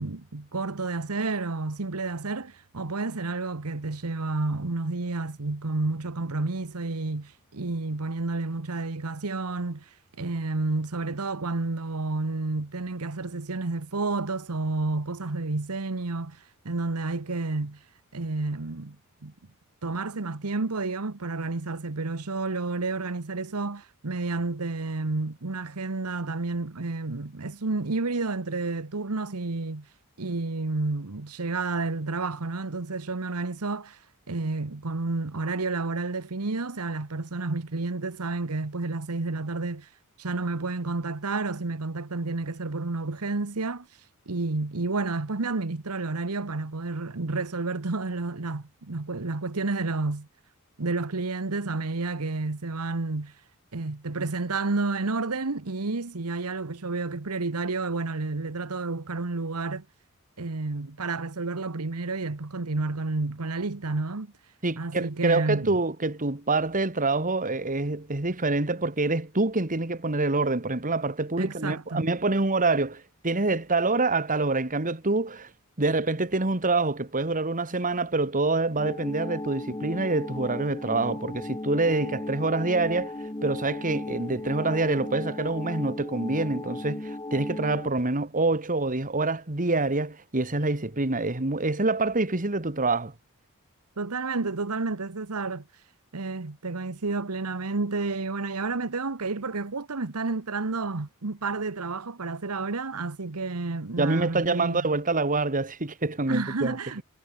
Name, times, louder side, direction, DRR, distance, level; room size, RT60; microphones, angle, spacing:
voice 1, 0.0-17.8 18.1-19.0 19.2-19.3 19.8-29.9 30.2-34.0 34.3-39.9 40.2-43.9 44.3-50.3 50.8-53.3 53.7-59.8 60.4-64.3 64.8-65.8 71.4-72.1 94.0-95.6 96.1-104.9 106.3-107.0, right 3 dB, 85° right, 1.2 m, -30 dB
voice 2, 64.6-75.5 75.8-83.1 83.4-93.1 104.0-106.8, right 3 dB, 35° right, 1.9 m, -26 dB
sound 1, 78.8-87.9, left 1 dB, 20° left, 1.2 m, -36 dB
head